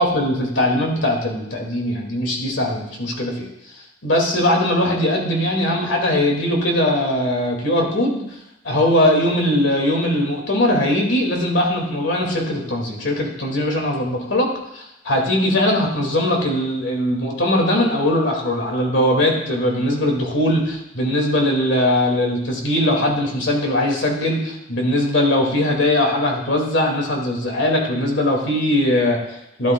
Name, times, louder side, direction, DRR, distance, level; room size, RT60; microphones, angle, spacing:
voice 1, 0.0-3.5 4.0-8.2 8.6-14.5 14.7-29.7, left 1 dB, 70° left, 0 dB, 2.0 m, -20 dB
12.0 x 11.0 x 2.2 m, 0.84 s
head